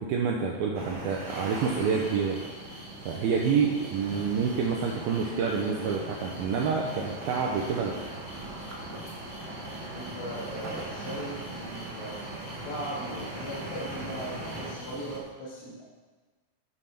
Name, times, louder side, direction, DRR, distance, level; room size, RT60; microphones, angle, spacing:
voice 1, 0.0-2.4 3.1-7.9, right 6 dB, 85° right, 0 dB, 2.1 m, -28 dB
sound 1, 0.7-14.7, right 1 dB, 60° right, 1.9 m, -41 dB
sound 2, 1.1-15.2, right 1 dB, 20° left, 1.7 m, -45 dB
voice 2, 9.9-12.2 12.6-15.8, right 1 dB, 75° left, -9 dB, 4.5 m, -38 dB
12.5 x 6.5 x 5.8 m, 1.3 s
omnidirectional pair, 5.4 m